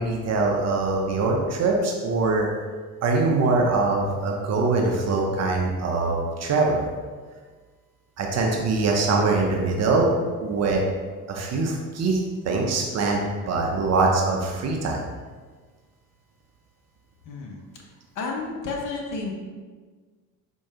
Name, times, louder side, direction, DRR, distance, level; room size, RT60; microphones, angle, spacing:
voice 1, 0.0-2.5 3.0-6.9 8.2-10.1 10.4-10.8 11.3-15.1, right 3 dB, 35° right, 0 dB, 0.6 m, -23 dB
voice 2, 17.2-17.6 18.1-19.3, left 3 dB, 40° left, 0 dB, 0.7 m, -31 dB
4.3 x 2.3 x 2.8 m, 1.4 s
figure-of-eight pair, 55°, 48 cm